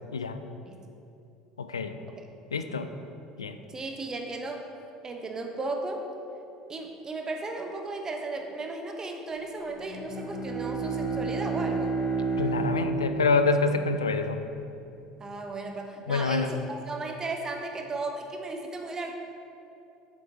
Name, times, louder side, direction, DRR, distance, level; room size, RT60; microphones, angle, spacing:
voice 1, 1.6-1.9 2.5-2.9 3.4-3.6 12.4-14.4 16.1-16.5, left 4 dB, 80° left, 9 dB, 0.3 m, -26 dB
voice 2, 3.7-4.6 5.0-6.0 6.7-12.0 15.2-19.1, right 2 dB, 25° right, 4 dB, 0.8 m, -35 dB
Bowed string instrument, 9.8-14.4, right 4 dB, 25° left, 1.4 m, -31 dB
7.6 x 7.4 x 2.8 m, 2.7 s
figure-of-eight pair, 65°, 3 cm